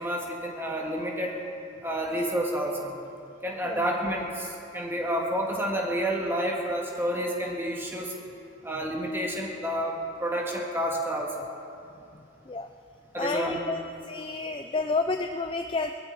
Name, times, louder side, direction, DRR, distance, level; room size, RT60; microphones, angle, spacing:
voice 1, 0.0-1.4 1.8-2.9 3.4-8.1 8.6-9.9 10.2-11.4 13.1-13.6, equal, 10° right, -1 dB, 1.9 m, -29 dB
voice 2, 13.2-13.8 14.1-15.9, left 3 dB, 25° left, 6 dB, 0.4 m, -30 dB
21.5 x 14.0 x 4.3 m, 2.6 s
head